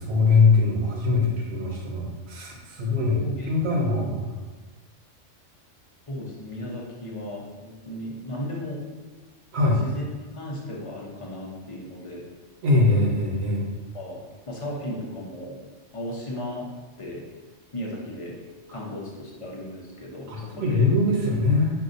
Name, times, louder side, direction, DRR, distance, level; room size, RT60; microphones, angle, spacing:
voice 1, 0.0-3.2 3.5-4.3 9.5-9.8 12.6-13.7 20.3-21.7, left 3 dB, 60° right, 0 dB, 1.0 m, -22 dB
voice 2, 3.0-3.7 6.1-8.8 9.8-10.0 10.3-12.2 13.9-14.2 14.5-15.6 15.9-16.7 17.0-17.2 17.7-18.4 18.7-20.9, left 1 dB, 30° left, -3 dB, 0.7 m, -35 dB
6.5 x 2.7 x 2.6 m, 1.3 s
omnidirectional pair, 1.3 m